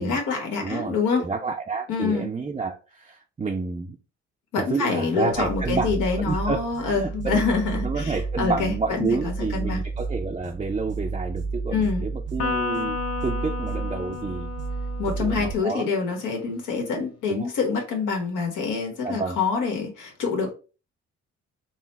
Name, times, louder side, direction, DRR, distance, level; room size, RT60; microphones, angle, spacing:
voice 1, 0.0-1.2 1.9-2.3 4.5-9.8 11.7-12.0 15.0-20.5, left 4 dB, 85° left, 1.4 m, -26 dB
voice 2, 0.6-4.0 4.5-14.5 15.2-15.9 17.3-17.5 19.0-19.4, right 4 dB, 20° right, 0.4 m, -30 dB
sound 1, 5.3-15.5, right 4 dB, 75° right, 0.8 m, -32 dB
Electric guitar, 12.4-15.9, left 5 dB, 50° left, 0.9 m, -32 dB
3.9 x 2.1 x 4.1 m
cardioid pair, 90°, 30 cm